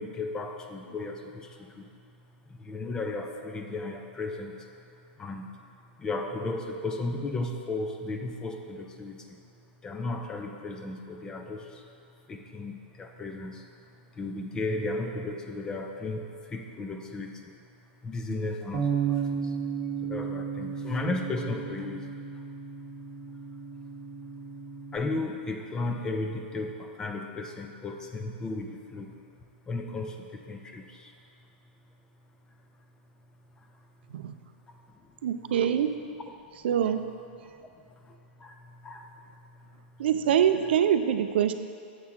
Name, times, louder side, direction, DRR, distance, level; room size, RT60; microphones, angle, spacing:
voice 1, 0.0-1.9 2.5-4.7 5.1-5.6 6.0-9.4 9.8-11.9 12.3-13.7 14.1-17.5 18.0-19.6 20.0-22.1 22.3-22.4 23.2-23.4 23.8-23.9 24.9-29.1 29.7-31.1 33.6-33.9 34.7-34.8 37.4-40.1, left 2 dB, 10° left, 4 dB, 0.3 m, -35 dB
Bass guitar, 18.7-25.0, right 6 dB, 35° right, 1.0 m, -33 dB
voice 2, 35.2-35.9 36.6-37.0 40.0-41.5, right 9 dB, 65° right, 9 dB, 0.4 m, -24 dB
7.4 x 5.9 x 3.6 m, 2.4 s
hypercardioid pair, 160°, 6 cm